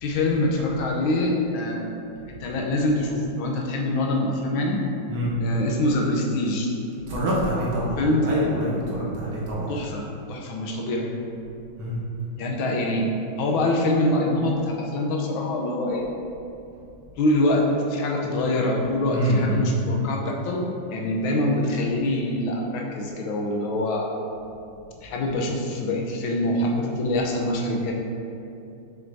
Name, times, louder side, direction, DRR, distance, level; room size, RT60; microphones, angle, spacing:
voice 1, 0.0-1.9 2.4-4.8 5.4-6.7 8.0-8.3 9.7-11.1 12.3-13.1 13.4-16.1 17.2-20.6 20.9-24.2 25.0-27.9, left 1 dB, 75° left, 0 dB, 1.5 m, -24 dB
voice 2, 7.1-9.7 11.8-12.0 19.1-19.7, equal, 70° right, -6 dB, 1.7 m, -25 dB
6.8 x 6.1 x 2.7 m, 2.7 s
omnidirectional pair, 2.4 m